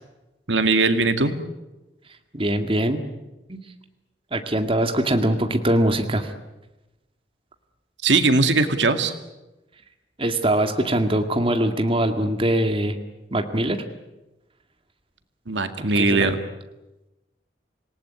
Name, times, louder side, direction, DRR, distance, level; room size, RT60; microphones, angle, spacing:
voice 1, 0.5-1.3 8.0-9.1 15.5-16.4, right 3 dB, 85° right, 8 dB, 2.1 m, -20 dB
voice 2, 2.3-3.0 3.5-3.6 4.3-6.3 10.2-13.0 13.3-13.8 15.8-16.3, right 1 dB, 30° right, 6 dB, 1.9 m, -22 dB
27.0 x 18.5 x 9.5 m, 1.0 s
head